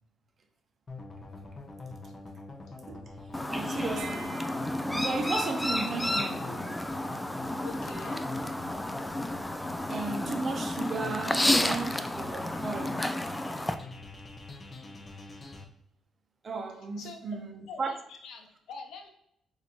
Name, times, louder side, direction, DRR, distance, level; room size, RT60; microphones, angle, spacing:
sound 1, 0.9-15.6, left 3 dB, 35° left, 0.7 m, -45 dB
Chirp tweet, 3.3-13.7, left 1 dB, 10° left, 0.3 m, -31 dB
voice 1, 3.5-4.4 4.9-6.7 9.9-13.0 16.4-17.9, right 3 dB, 45° right, 0.7 m, -35 dB
sound 2, 3.9-6.7, right 4 dB, 85° right, 0.8 m, -49 dB
voice 2, 7.5-8.2 16.8-17.4 17.7-19.1, left 4 dB, 80° left, 0.8 m, -44 dB
6.1 x 2.7 x 2.9 m
cardioid pair, 90°, 0 cm